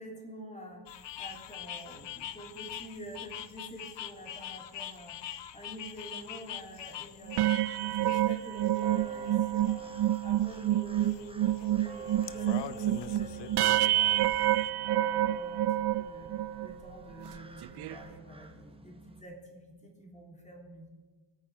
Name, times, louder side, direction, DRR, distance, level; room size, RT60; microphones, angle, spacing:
voice 1, 0.0-7.5 7.8-14.3 14.7-16.3 16.6-20.9, right 1 dB, 15° left, 0 dB, 3.3 m, -48 dB
sound 1, 0.9-14.7, left 10 dB, 70° left, 0.8 m, -44 dB
sound 2, 7.3-16.7 17.2-17.4 17.6-17.9, right 13 dB, 60° right, 0.5 m, -28 dB
sound 3, 8.8-19.2, right 4 dB, 10° right, 1.1 m, -45 dB
23.0 x 9.1 x 4.9 m, 1.3 s
wide cardioid pair, 135°, 45 cm